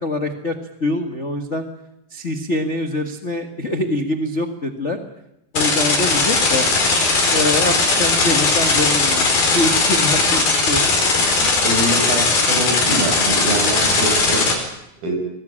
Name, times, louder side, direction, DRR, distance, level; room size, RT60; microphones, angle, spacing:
voice 1, 0.0-0.5 0.8-1.6 2.1-5.0 5.5-6.7 7.3-9.3 9.5-10.8, left 2 dB, 60° left, 5 dB, 0.7 m, -24 dB
sound 1, 5.6-14.5, left 3 dB, 80° left, 6.9 m, -18 dB
voice 2, 11.4-14.4 15.0-15.2, right 1 dB, 75° right, 3 dB, 8.3 m, -24 dB
23.5 x 19.0 x 8.9 m, 0.84 s
omnidirectional pair, 4.3 m